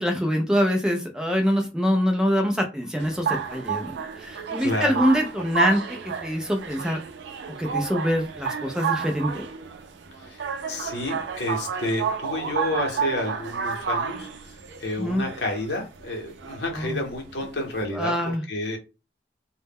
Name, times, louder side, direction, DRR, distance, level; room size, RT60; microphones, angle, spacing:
voice 1, 0.0-5.8 6.2-7.0 7.6-9.4 15.0-15.3 16.7-17.0 17.9-18.4, equal, 5° right, 3 dB, 0.3 m, -24 dB
London Underground Announcement in Bank Station, 3.0-17.8, right 6 dB, 85° right, 0.4 m, -31 dB
voice 2, 4.6-5.0 10.2-18.1 18.5-18.8, left 2 dB, 75° left, 1 dB, 0.8 m, -30 dB
2.1 x 2.1 x 3.4 m, 0.30 s
head